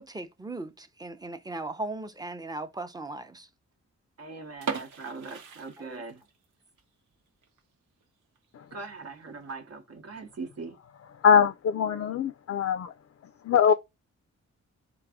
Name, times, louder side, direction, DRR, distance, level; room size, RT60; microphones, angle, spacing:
voice 1, 0.0-3.5 5.8-6.0, right 2 dB, 15° right, 0.6 m, -38 dB
voice 2, 4.2-6.2 8.7-10.8, right 4 dB, 60° right, 0.8 m, -41 dB
sound 1, 4.5-6.4 6.8-6.9 7.4-7.6 8.0-8.1 8.4-8.5 9.2-9.5, right 5 dB, 85° right, 0.9 m, -37 dB
voice 3, 11.2-12.9 13.4-13.7, left 7 dB, 55° left, 0.4 m, -22 dB
3.8 x 2.6 x 4.7 m
cardioid pair, 85°, 29 cm